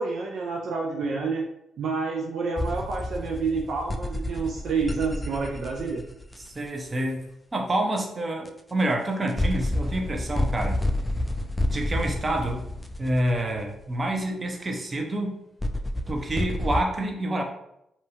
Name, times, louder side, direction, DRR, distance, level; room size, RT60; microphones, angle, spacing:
voice 1, 0.0-1.5 1.8-6.0, right 4 dB, 65° right, 0 dB, 0.3 m, -28 dB
sound 1, 2.6-6.7 8.5-8.6 9.3-13.8 15.6-16.8, left 1 dB, 15° left, 0.3 m, -29 dB
voice 2, 6.4-7.2 7.5-10.8 11.7-12.6 13.0-15.4 16.1-17.4, right 1 dB, 35° right, 1 dB, 0.7 m, -28 dB
2.7 x 2.3 x 2.7 m, 0.80 s
hypercardioid pair, 45°, 0 cm